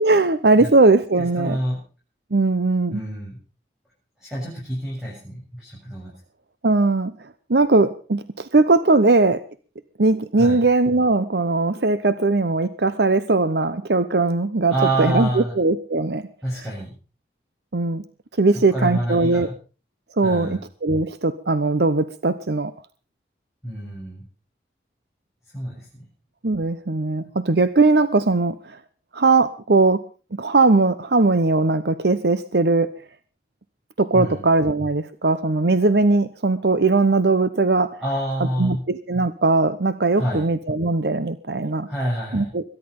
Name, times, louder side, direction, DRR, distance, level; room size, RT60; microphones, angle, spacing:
voice 1, 0.0-1.6 2.3-3.0 6.6-7.1 7.5-9.4 10.0-16.3 16.5-16.6 17.7-18.0 18.4-19.5 20.2-22.7 26.4-28.8 29.1-30.0 30.4-32.9 34.0-38.0 38.4-41.9 42.3-42.6, right 3 dB, 70° right, 13 dB, 0.9 m, -19 dB
voice 2, 1.4-1.8 2.9-3.4 4.2-6.1 10.4-10.6 14.7-15.5 16.4-16.9 18.7-19.5 20.2-20.6 23.6-24.2 25.5-25.8 27.2-27.3 34.1-34.4 38.0-38.8 40.2-40.4 41.9-42.5, right 1 dB, 5° right, -6 dB, 7.3 m, -27 dB
22.5 x 11.0 x 5.4 m, 0.38 s
head